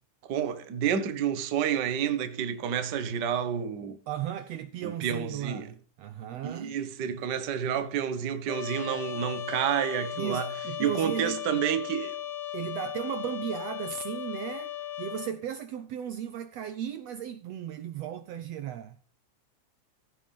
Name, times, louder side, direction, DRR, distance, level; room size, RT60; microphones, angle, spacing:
voice 1, 0.3-4.0 4.8-5.7 6.4-10.5 10.8-12.2, right 8 dB, 50° right, 1.4 m, -29 dB
voice 2, 3.8-6.8 10.2-11.6 12.5-19.0, right 10 dB, 70° right, 1.7 m, -36 dB
Trumpet, 8.5-15.3, left 10 dB, 90° left, 0.9 m, -37 dB
15.5 x 6.6 x 5.4 m
omnidirectional pair, 3.4 m